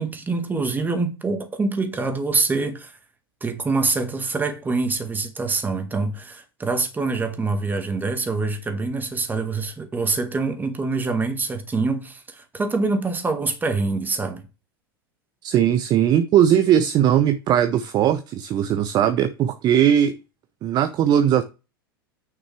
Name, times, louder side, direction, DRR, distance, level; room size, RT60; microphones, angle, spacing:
voice 1, 0.0-3.0 3.4-14.4, right 3 dB, 15° right, 1.9 m, -25 dB
voice 2, 15.4-20.2 20.6-21.4, right 10 dB, 35° right, 0.7 m, -19 dB
9.4 x 6.1 x 3.4 m
figure-of-eight pair, 85°, 12 cm